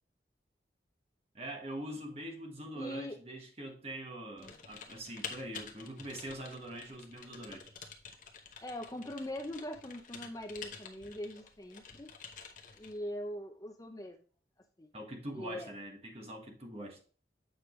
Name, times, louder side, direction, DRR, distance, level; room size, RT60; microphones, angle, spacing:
voice 1, 1.3-7.7 14.9-17.0, right 1 dB, 35° right, 1.3 m, -43 dB
voice 2, 2.7-3.2 4.4-4.5 8.6-12.1 12.8-14.2 14.8-14.9 15.3-15.7, equal, 20° left, 0.5 m, -42 dB
Typing, 4.4-13.0, left 6 dB, 45° left, 1.0 m, -49 dB
8.0 x 5.1 x 3.1 m
head